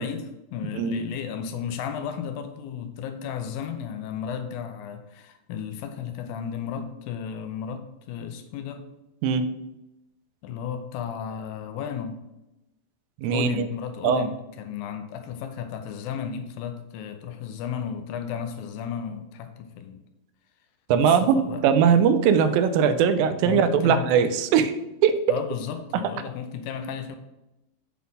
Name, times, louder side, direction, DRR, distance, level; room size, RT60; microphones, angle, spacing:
voice 1, 0.0-8.9 10.4-12.2 13.3-20.0 21.0-21.6 23.5-24.1 25.3-27.2, left 7 dB, 90° left, 7 dB, 2.5 m, -34 dB
voice 2, 0.7-1.1 9.2-9.5 13.2-13.6 14.0-14.3 20.9-24.7 25.0-25.2 25.9-26.0, right 7 dB, 85° right, 11 dB, 2.3 m, -20 dB
7.6 x 4.1 x 5.5 m, 0.93 s
omnidirectional pair, 4.1 m